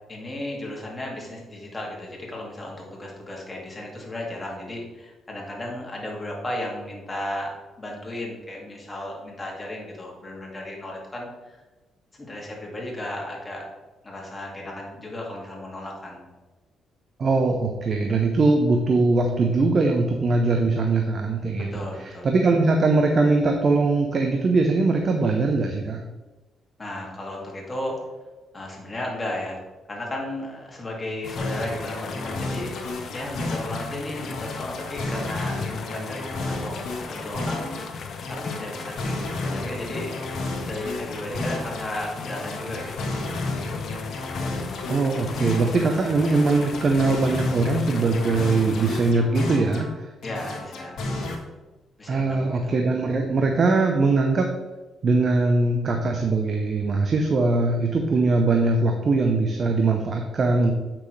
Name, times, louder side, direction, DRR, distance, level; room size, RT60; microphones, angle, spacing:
voice 1, 0.1-11.6 12.2-13.7 14.0-16.2 21.6-22.3 26.8-28.1 28.5-29.6 29.9-32.7 33.1-37.9 38.3-40.2 40.7-43.2 45.6-45.7 50.2-51.0 52.0-52.7, left 1 dB, 25° left, -1 dB, 2.2 m, -34 dB
voice 2, 17.2-21.7 22.2-26.0 44.9-49.9 52.1-54.5 55.0-60.7, right 3 dB, 45° right, 3 dB, 0.8 m, -21 dB
sound 1, 31.2-49.1, left 5 dB, 55° left, 0.9 m, -37 dB
sound 2, 31.4-33.9 34.2-37.9 38.2-41.9 42.2-45.9 46.2-49.9 50.2-51.3, left 2 dB, 70° left, 1.6 m, -32 dB
8.3 x 6.1 x 3.3 m, 1.2 s
cardioid pair, 90°, 0 cm